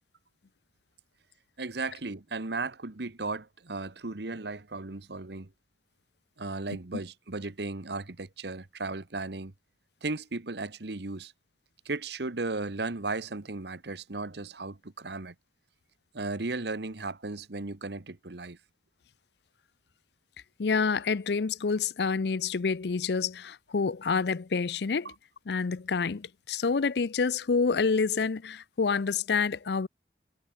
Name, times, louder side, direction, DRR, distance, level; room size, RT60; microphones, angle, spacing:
voice 1, 1.6-5.5 6.4-9.5 10.0-11.3 11.8-15.3 16.1-18.6 25.0-25.1, right 3 dB, 65° right, 1.3 m, -35 dB
voice 2, 20.6-25.1 25.5-29.9, left 5 dB, 65° left, 0.5 m, -28 dB
head